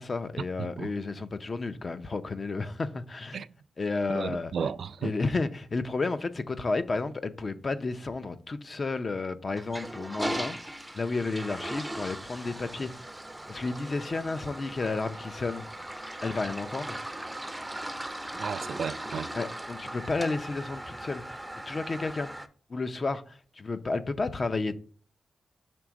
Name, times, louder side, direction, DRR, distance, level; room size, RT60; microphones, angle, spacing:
voice 1, 0.0-3.4 3.8-4.5 5.0-10.6 10.9-12.9 13.5-15.7 16.2-17.0 19.3-21.4 21.7-22.3 22.7-24.8, left 3 dB, 40° left, 0.6 m, -32 dB
voice 2, 4.1-5.1 18.4-19.3, right 6 dB, 70° right, 0.3 m, -33 dB
Toilet flush, 9.5-22.5, right 1 dB, 10° right, 0.5 m, -38 dB
6.1 x 3.5 x 5.0 m
cardioid pair, 90°, 0 cm